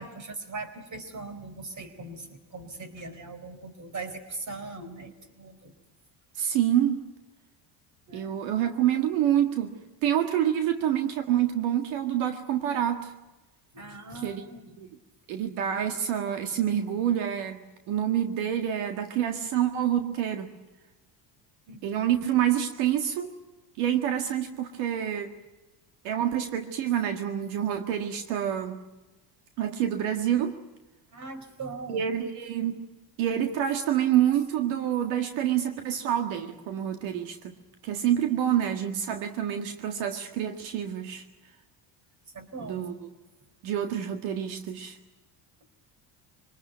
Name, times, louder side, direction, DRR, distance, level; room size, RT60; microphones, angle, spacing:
voice 1, 0.0-5.7 8.1-8.3 13.7-14.7 21.7-21.9 31.1-32.1 42.3-42.9, right 3 dB, 40° right, 9 dB, 4.3 m, -40 dB
voice 2, 6.4-7.0 8.1-9.8 10.0-13.1 14.2-14.9 15.3-20.5 21.8-23.3 23.8-25.3 26.0-28.8 29.6-30.6 31.9-32.8 33.2-37.6 37.8-41.2 42.6-43.1 43.6-45.0, right 10 dB, 85° right, 6 dB, 1.9 m, -27 dB
25.0 x 19.5 x 9.3 m, 1.1 s
cardioid pair, 105°, 46 cm